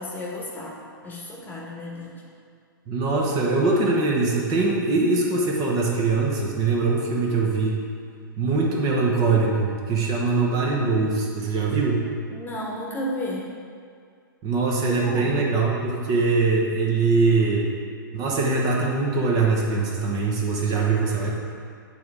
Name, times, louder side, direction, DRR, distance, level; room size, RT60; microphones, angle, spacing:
voice 1, 0.0-2.2 12.3-13.4 14.9-15.4, left 1 dB, 15° left, -3 dB, 1.3 m, -33 dB
voice 2, 2.9-7.8 8.4-12.1 14.4-17.7 18.1-21.3, right 3 dB, 35° right, -2 dB, 1.2 m, -22 dB
9.2 x 3.8 x 4.8 m, 2.2 s
hypercardioid pair, 120°, 12 cm